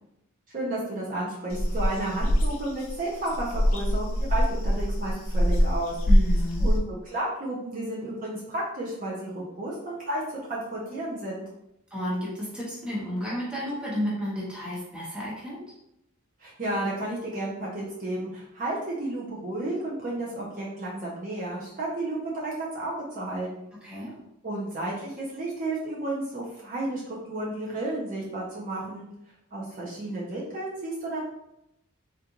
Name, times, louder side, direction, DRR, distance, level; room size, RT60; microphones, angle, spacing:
voice 1, 0.5-5.9 6.6-10.2 10.5-11.4 16.4-23.7 24.4-29.1 29.5-31.2, right 1 dB, 40° right, -5 dB, 0.7 m, -32 dB
sound 1, 1.5-6.8, equal, 70° left, 0.5 m, -23 dB
voice 2, 6.1-6.7 11.9-15.6 23.8-24.1, equal, 5° right, -7 dB, 1.1 m, -32 dB
3.6 x 2.4 x 2.9 m, 0.83 s
head